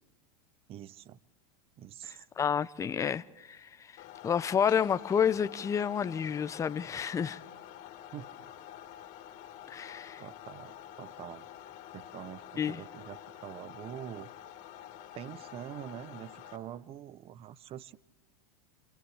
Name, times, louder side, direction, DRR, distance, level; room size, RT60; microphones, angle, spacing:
voice 1, 0.7-1.2 1.8-2.2 8.1-8.5 10.2-11.5 11.9-14.3 15.1-18.0, right 11 dB, 30° right, 0.8 m, -45 dB
voice 2, 2.4-7.4 9.7-10.2 12.6-12.8, left 7 dB, 15° left, 0.7 m, -30 dB
sound 1, 4.0-16.6, left 11 dB, 45° left, 3.8 m, -48 dB
29.5 x 28.0 x 3.3 m
supercardioid pair, 125°, 18 cm